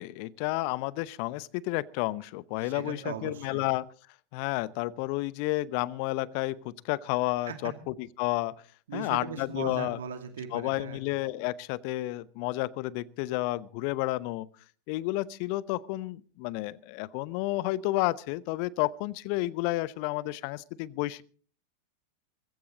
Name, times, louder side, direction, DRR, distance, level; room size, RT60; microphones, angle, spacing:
voice 1, 0.0-3.9 4.3-8.5 8.9-10.0 10.5-14.5 14.9-21.2, left 18 dB, 45° left, 21 dB, 0.8 m, -31 dB
voice 2, 2.6-3.6 7.5-7.7 8.9-11.0, right 7 dB, 60° right, 7 dB, 2.3 m, -39 dB
20.0 x 15.5 x 4.0 m, 0.43 s
figure-of-eight pair, 90°, 0 cm